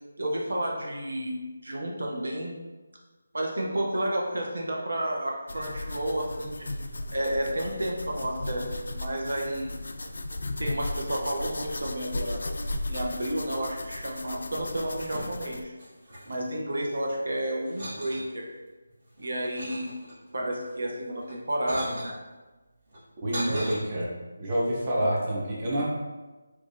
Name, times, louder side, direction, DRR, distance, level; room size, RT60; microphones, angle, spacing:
voice 1, 0.2-2.6 3.3-6.7 7.1-9.7 10.6-12.4 12.9-15.7 16.3-18.5 19.2-19.9 20.3-22.1 23.3-23.7, right 1 dB, 75° right, -1 dB, 0.7 m, -31 dB
sound 1, 5.5-15.6, left 1 dB, 70° left, 0.3 m, -36 dB
sound 2, 14.6-15.5 15.8-17.1 17.6-18.3 18.9-20.4 21.2-22.1 22.9-23.7, right 1 dB, 50° right, 1.3 m, -39 dB
voice 2, 23.2-24.1 24.4-25.8, right 1 dB, 25° right, -6 dB, 0.7 m, -27 dB
4.5 x 2.3 x 2.6 m, 1.2 s
figure-of-eight pair, 170°, 0 cm